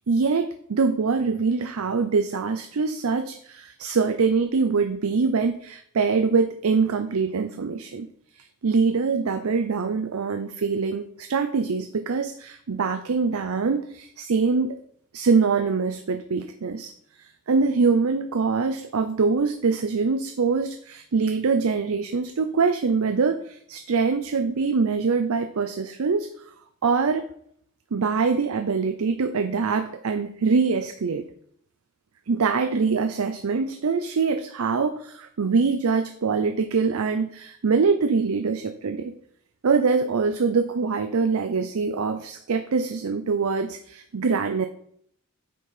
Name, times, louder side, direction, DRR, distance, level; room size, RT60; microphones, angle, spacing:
voice 1, 0.0-8.1 8.4-14.8 15.1-16.9 17.2-26.3 26.8-27.2 27.9-31.3 32.3-39.1 39.6-44.7, right 4 dB, 85° right, 8 dB, 0.5 m, -24 dB
8.7 x 4.4 x 4.9 m, 0.65 s
head